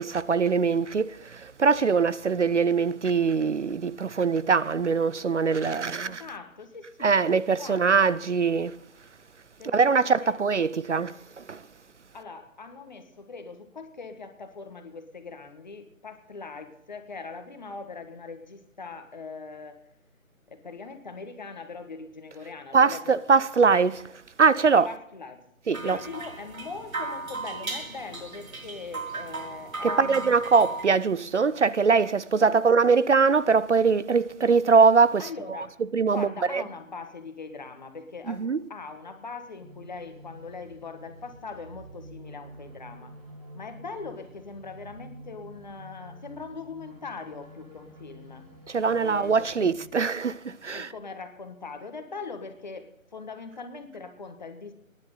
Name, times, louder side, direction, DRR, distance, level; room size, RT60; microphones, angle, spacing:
voice 1, 0.0-6.2 7.0-8.8 9.7-11.6 22.7-24.1 24.4-24.9 25.7-26.0 29.8-35.3 35.9-36.6 38.3-38.6 48.7-50.9, right 5 dB, 60° right, 0.5 m, -22 dB
voice 2, 6.1-7.1 7.6-8.1 9.6-9.9 10.2-10.4 12.1-19.8 20.5-23.1 24.8-25.4 25.8-30.4 32.0-32.6 35.2-35.8 36.0-43.2 43.5-48.5 49.0-49.7 50.7-54.7, left 4 dB, 35° left, 1.4 m, -41 dB
Suikinkutsu at Enko-ji, 25.7-30.8, right 3 dB, 85° right, 1.7 m, -35 dB
sound 1, 39.6-49.9, equal, 25° right, 3.9 m, -48 dB
21.5 x 10.5 x 3.8 m
figure-of-eight pair, 160°, 41 cm